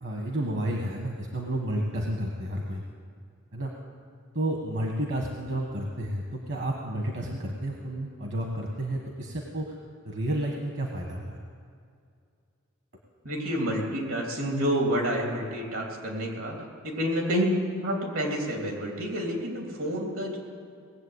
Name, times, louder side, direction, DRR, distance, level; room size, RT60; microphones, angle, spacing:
voice 1, 0.0-2.8 3.5-3.7 4.3-9.7 10.0-11.4, right 1 dB, 60° right, 1 dB, 1.4 m, -31 dB
voice 2, 13.2-16.6 16.8-17.5 17.8-20.4, equal, 80° right, 0 dB, 3.1 m, -28 dB
19.5 x 7.7 x 8.1 m, 2.3 s
head